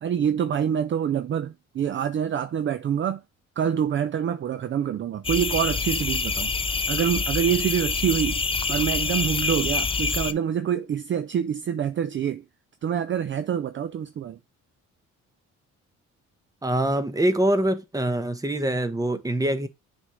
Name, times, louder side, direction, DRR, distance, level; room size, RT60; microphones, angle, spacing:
voice 1, 0.0-3.2 3.6-6.5 6.9-8.4 8.7-12.4 12.8-14.4, right 8 dB, 40° right, 0.5 m, -26 dB
sound 1, 5.2-10.3, left 4 dB, 20° left, 0.5 m, -26 dB
voice 2, 16.6-19.7, right 1 dB, 10° right, 1.0 m, -24 dB
7.1 x 3.5 x 4.9 m
cardioid pair, 90°, 30 cm